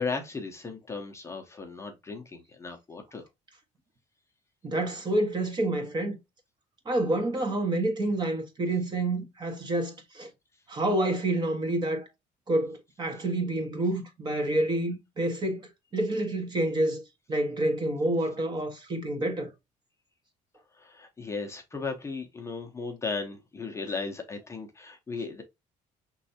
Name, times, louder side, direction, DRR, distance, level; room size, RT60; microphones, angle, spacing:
voice 1, 0.0-3.3 20.7-25.4, left 4 dB, 20° left, 0.8 m, -36 dB
voice 2, 4.6-6.2 6.8-10.3 10.7-12.1 12.5-17.0 17.3-19.5, right 1 dB, 30° right, 1.4 m, -28 dB
5.4 x 3.2 x 2.8 m
cardioid pair, 115°, 14 cm